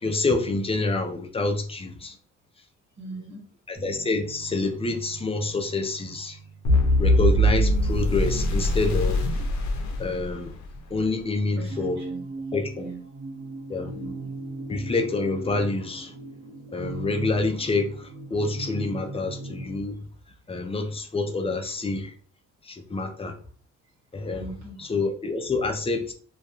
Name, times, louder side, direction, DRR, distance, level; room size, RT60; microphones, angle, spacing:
voice 1, 0.0-2.1 3.7-6.4 7.0-9.2 10.0-10.5 10.9-12.0 12.5-12.9 13.7-13.9 14.7-16.1 16.7-20.0 20.5-22.1 22.6-23.4 24.1-24.4 24.8-26.1, left 3 dB, 20° left, 0.4 m, -27 dB
voice 2, 3.0-3.5 11.6-12.2 12.8-13.0 13.9-14.3 24.4-24.8, right 3 dB, 65° right, 1.0 m, -40 dB
sound 1, 3.7-8.0, right 5 dB, 15° right, 1.1 m, -45 dB
sound 2, 6.6-10.8, equal, 70° left, 0.6 m, -22 dB
sound 3, 11.7-19.9, right 2 dB, 35° right, 1.1 m, -37 dB
2.3 x 2.1 x 2.9 m
cardioid pair, 90°, 30 cm